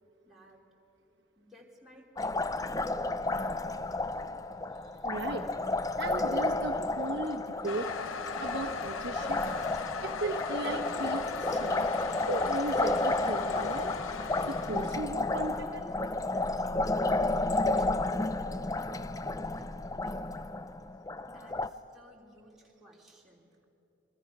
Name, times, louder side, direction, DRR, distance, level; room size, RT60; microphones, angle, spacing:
voice 1, 0.2-0.6 1.4-4.7 8.3-8.5 17.8-17.9 20.0-20.1 21.3-23.6, equal, ahead, -4 dB, 3.3 m, -57 dB
Liquid, 2.2-21.7, left 2 dB, 15° left, 0.5 m, -32 dB
voice 2, 5.0-5.5 6.0-7.9 8.4-9.4 10.0-11.9 12.3-13.9 14.4-15.8, right 2 dB, 55° right, 1 dB, 1.2 m, -36 dB
Toilet flush, 7.7-15.1, left 6 dB, 85° left, 0.8 m, -39 dB
28.5 x 23.0 x 6.1 m, 2.9 s
head